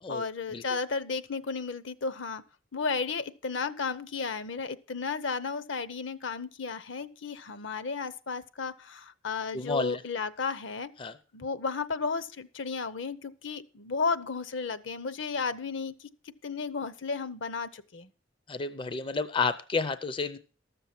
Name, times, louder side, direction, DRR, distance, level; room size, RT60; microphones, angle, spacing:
voice 1, 0.1-2.4 2.7-10.9 11.3-16.1 16.4-18.1, left 4 dB, 65° left, 15 dB, 0.7 m, -33 dB
voice 2, 9.5-10.0 11.0-11.2 18.5-20.4, left 4 dB, 25° left, 13 dB, 0.5 m, -31 dB
13.0 x 6.9 x 5.9 m, 0.38 s
head